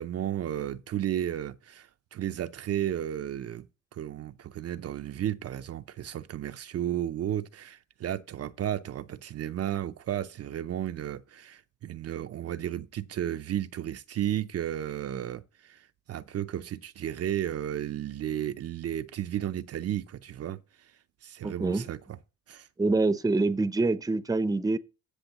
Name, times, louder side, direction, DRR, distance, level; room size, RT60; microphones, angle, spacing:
voice 1, 0.0-3.7 3.9-20.6 21.2-22.0 22.5-22.7, right 11 dB, 55° right, 0.6 m, -33 dB
voice 2, 21.4-21.9 22.8-24.8, right 3 dB, 10° right, 0.7 m, -26 dB
16.0 x 6.3 x 3.0 m
cardioid pair, 90°, 30 cm